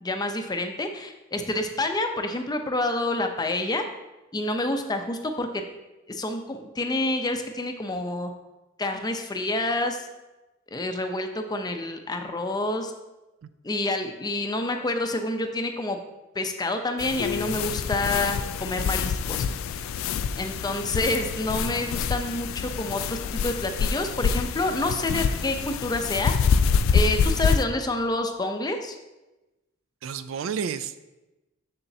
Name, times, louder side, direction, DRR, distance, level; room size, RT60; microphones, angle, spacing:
voice 1, 0.0-3.9 4.3-5.6 6.1-8.3 8.8-10.1 10.7-12.9 13.6-16.0 16.3-19.4 20.4-26.3 26.9-29.0, left 2 dB, 20° left, 6 dB, 0.5 m, -28 dB
sound 1, 17.0-27.6, left 6 dB, 80° left, 0.3 m, -26 dB
voice 2, 30.0-31.1, right 7 dB, 75° right, 13 dB, 0.3 m, -31 dB
7.0 x 6.7 x 2.7 m, 1.0 s
head